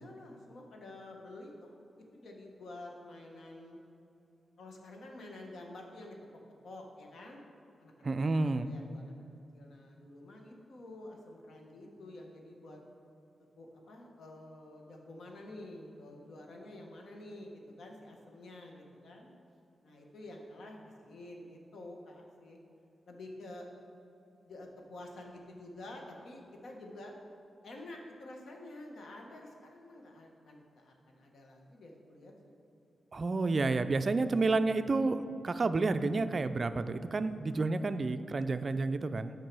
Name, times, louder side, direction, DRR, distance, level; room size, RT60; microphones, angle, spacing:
voice 1, 0.0-1.7 2.1-3.8 4.6-6.4 6.6-7.4 7.8-12.8 13.6-19.3 19.8-22.6 23.1-23.7 24.4-27.1 27.6-32.5, left 1 dB, 75° left, 1 dB, 1.3 m, -49 dB
voice 2, 8.0-8.7 33.1-39.3, right 3 dB, 40° right, 11 dB, 0.4 m, -30 dB
9.3 x 4.6 x 6.1 m, 2.7 s
cardioid pair, 95°, 0 cm